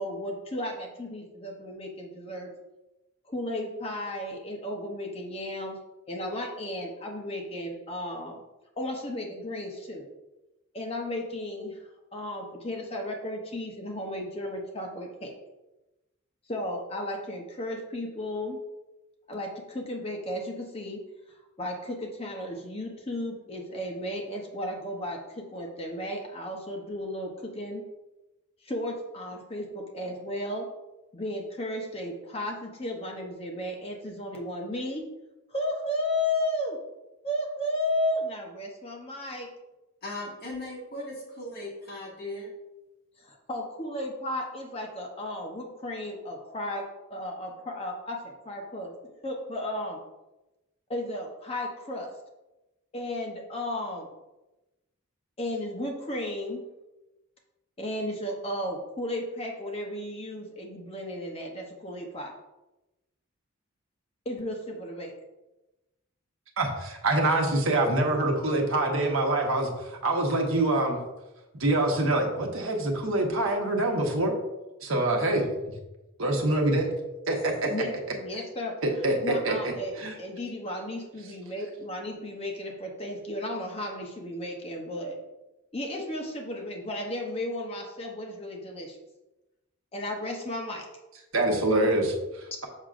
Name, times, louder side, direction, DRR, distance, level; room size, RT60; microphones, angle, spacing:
voice 1, 0.0-2.5 3.3-5.8 6.1-8.4 8.8-10.1 10.7-11.8 12.1-15.3 16.5-18.6 19.3-21.0 21.6-27.8 28.6-30.7 31.1-35.0 35.5-36.8 37.2-39.5 43.2-50.0 50.9-52.1 52.9-54.1 55.4-56.6 57.8-62.3 64.2-65.1 77.7-78.7 79.2-79.9 80.2-85.2 85.7-89.0 89.9-90.8, left 1 dB, 25° left, 1 dB, 0.8 m, -34 dB
voice 2, 40.0-42.5, left 1 dB, 45° left, -4 dB, 2.0 m, -38 dB
voice 3, 66.6-71.0 71.5-74.3 74.8-75.7 76.2-76.9 77.3-77.7 78.3-78.4 78.8-80.2 91.3-92.7, right 2 dB, 65° right, 2 dB, 1.1 m, -25 dB
6.5 x 6.0 x 2.5 m, 1.0 s
head